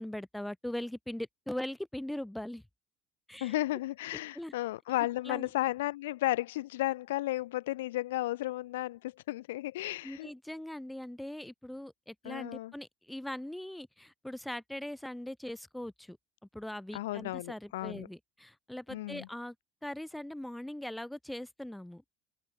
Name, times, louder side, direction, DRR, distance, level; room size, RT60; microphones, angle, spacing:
voice 1, 0.0-2.6 3.3-3.6 4.4-4.5 5.2-5.5 10.0-16.2 16.5-19.5 19.8-22.0, left 1 dB, 5° left, 7.8 m, -40 dB
voice 2, 3.4-10.3 12.2-12.7 16.9-18.1 18.9-19.3, left 16 dB, 75° left, 1.6 m, -34 dB
hypercardioid pair, 70°, 0 cm